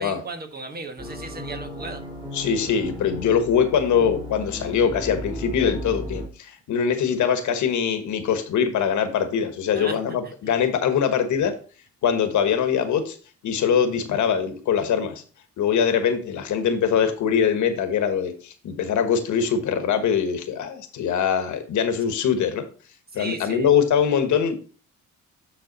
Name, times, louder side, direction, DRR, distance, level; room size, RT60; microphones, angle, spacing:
voice 1, 0.0-2.0 9.7-10.0 10.2-10.3 23.1-23.7, right 2 dB, 30° right, 6 dB, 1.4 m, -35 dB
sound 1, 1.0-6.3, equal, 15° right, 3.0 m, -35 dB
voice 2, 2.3-11.5 12.0-13.2 13.4-15.2 15.6-22.6 23.1-24.7, left 7 dB, 75° left, 8 dB, 1.4 m, -22 dB
9.4 x 3.9 x 4.1 m, 0.38 s
cardioid pair, 90°, 30 cm